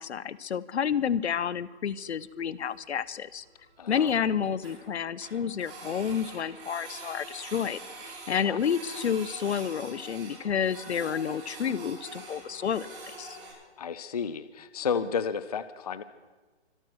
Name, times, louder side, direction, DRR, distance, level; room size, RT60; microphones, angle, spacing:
voice 1, 0.0-3.4 3.9-12.9 13.2-13.4, left 8 dB, 70° left, 19 dB, 0.8 m, -30 dB
Printer, 1.9-2.0 2.2-2.3 2.7-2.8 3.0-3.1 3.4-3.5 3.7-4.8 5.2-13.5, right 3 dB, 25° right, 6.4 m, -45 dB
voice 2, 3.8-4.2 8.3-8.6 13.8-16.0, left 6 dB, 35° left, 13 dB, 0.5 m, -32 dB
25.0 x 9.1 x 6.2 m, 1.3 s
hypercardioid pair, 165°, 34 cm